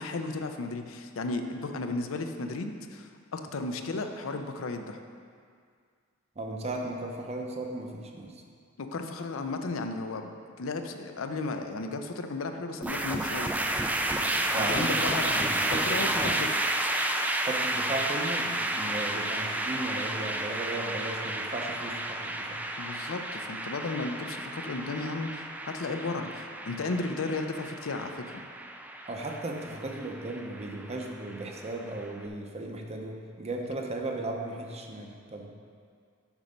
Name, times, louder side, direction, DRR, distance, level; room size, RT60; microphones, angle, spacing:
voice 1, 0.0-5.0 8.8-13.5 14.7-15.4 15.7-16.5 16.8-16.9 22.8-28.4, left 3 dB, 75° left, 6 dB, 0.5 m, -34 dB
voice 2, 6.4-8.4 14.5-16.4 17.4-22.6 29.1-35.5, right 2 dB, 30° right, 1 dB, 0.7 m, -36 dB
sound 1, 12.8-32.1, right 1 dB, 10° right, 0.3 m, -31 dB
7.3 x 5.3 x 5.2 m, 2.1 s
head